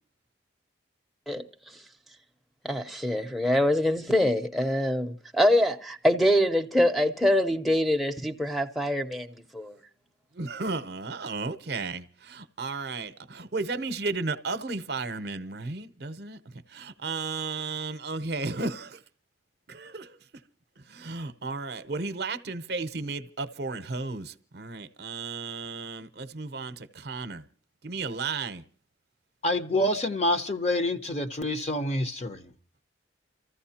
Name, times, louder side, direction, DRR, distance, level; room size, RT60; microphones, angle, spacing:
voice 1, 2.6-9.3 9.5-9.7, equal, ahead, 0.6 m, -24 dB
voice 2, 10.4-12.0 12.3-19.0 19.7-20.2 20.9-27.4 27.8-28.6, right 3 dB, 55° right, 0.7 m, -34 dB
voice 3, 29.4-32.4, left 1 dB, 35° left, 0.8 m, -27 dB
29.5 x 14.5 x 2.8 m
head